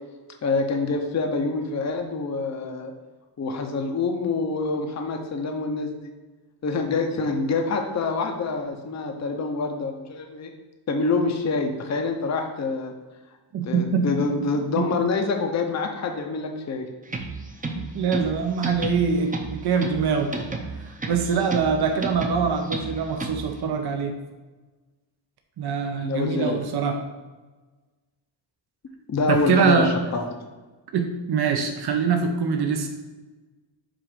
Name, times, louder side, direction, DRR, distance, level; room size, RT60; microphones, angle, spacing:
voice 1, 0.4-2.9 3.4-6.1 6.6-10.5 10.9-12.9 13.6-16.9 26.0-26.6 29.1-30.3, left 3 dB, 35° left, 3 dB, 0.7 m, -26 dB
voice 2, 13.5-14.4 14.7-15.1 17.8-20.3 20.8-24.1 25.6-27.0 29.3-29.9 30.9-32.9, right 5 dB, 55° right, 4 dB, 0.7 m, -24 dB
sound 1, 17.0-23.6, right 3 dB, 15° right, 0.7 m, -33 dB
7.4 x 2.5 x 5.0 m, 1.2 s
wide cardioid pair, 110°, 47 cm